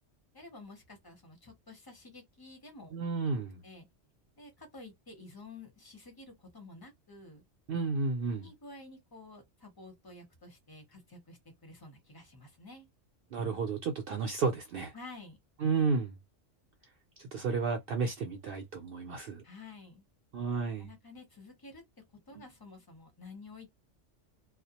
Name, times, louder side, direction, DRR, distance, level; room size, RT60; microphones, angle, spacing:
voice 1, 0.3-3.0 3.3-3.9 4.4-7.4 8.4-12.9 14.9-15.4 19.4-20.0 20.8-21.8 22.3-23.7, left 3 dB, 25° left, 0.7 m, -51 dB
voice 2, 2.9-3.6 7.7-8.5 13.3-14.9 15.6-16.1 17.2-19.4 20.3-20.9, right 4 dB, 60° right, 0.6 m, -32 dB
2.3 x 2.1 x 2.8 m
omnidirectional pair, 1.2 m